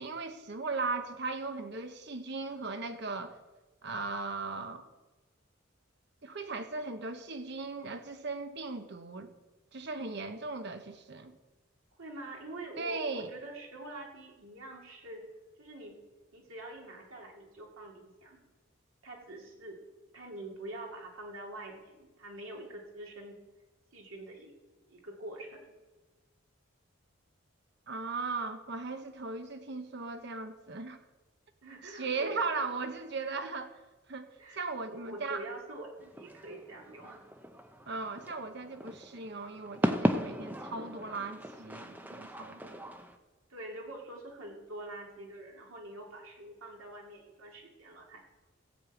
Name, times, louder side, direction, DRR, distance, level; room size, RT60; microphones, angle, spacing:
voice 1, 0.0-3.4 3.8-4.9 6.2-9.3 9.7-11.4 12.8-13.3 27.9-31.0 31.8-33.8 34.1-34.3 34.5-35.4 37.9-42.9, right 3 dB, 55° right, 8 dB, 1.0 m, -37 dB
voice 2, 12.0-15.3 15.6-16.0 16.3-18.4 19.0-19.8 20.1-23.4 23.9-24.5 24.9-25.7 31.6-32.4 34.4-34.6 34.9-37.2 43.5-48.2, right 1 dB, 80° right, 0 dB, 2.5 m, -45 dB
sound 1, 36.0-43.2, equal, 10° right, 0.7 m, -36 dB
16.0 x 5.5 x 8.2 m, 1.2 s
head